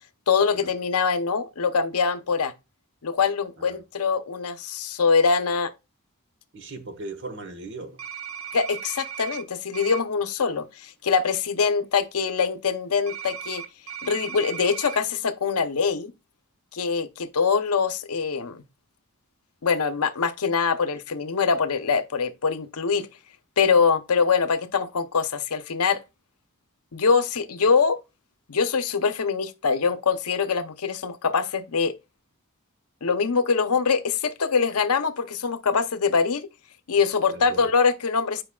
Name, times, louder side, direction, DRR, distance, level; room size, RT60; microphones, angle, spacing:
voice 1, 0.3-2.5 3.0-5.7 8.5-13.6 14.0-16.1 16.7-18.6 19.6-23.1 23.6-26.0 26.9-28.0 28.5-31.9 33.0-36.5 36.9-38.4, left 5 dB, 90° left, 0.7 m, -23 dB
voice 2, 6.5-8.0 37.3-37.7, right 2 dB, 55° right, 1.2 m, -38 dB
sound 1, 8.0-9.4 9.7-10.0 13.1-15.0, right 8 dB, 70° right, 0.9 m, -36 dB
9.6 x 5.1 x 2.3 m
head